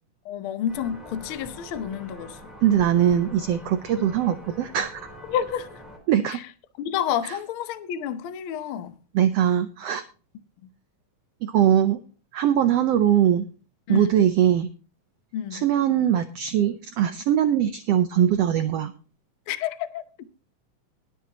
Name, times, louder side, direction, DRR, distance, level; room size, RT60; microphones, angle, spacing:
voice 1, 0.2-2.5 5.3-5.8 6.3-6.4 6.8-9.0 13.9-14.1 15.3-15.6 19.5-20.0, left 9 dB, 80° left, 1.2 m, -29 dB
sound 1, 0.7-6.0, equal, ahead, 3.1 m, -44 dB
voice 2, 2.6-5.0 6.1-6.4 7.2-7.4 9.1-10.0 11.4-12.0 12.3-13.5 13.9-14.7 15.5-18.9, right 10 dB, 85° right, 1.4 m, -21 dB
20.5 x 7.6 x 2.9 m
omnidirectional pair, 3.7 m